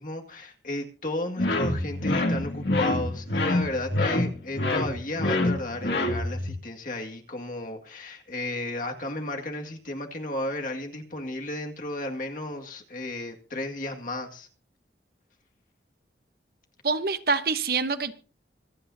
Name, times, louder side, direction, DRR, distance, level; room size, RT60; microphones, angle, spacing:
voice 1, 0.0-14.5, left 1 dB, 45° left, 2.0 m, -34 dB
sound 1, 1.4-6.5, left 2 dB, 70° left, 2.7 m, -26 dB
voice 2, 16.8-18.1, right 4 dB, 55° right, 1.0 m, -25 dB
25.5 x 8.8 x 2.7 m
head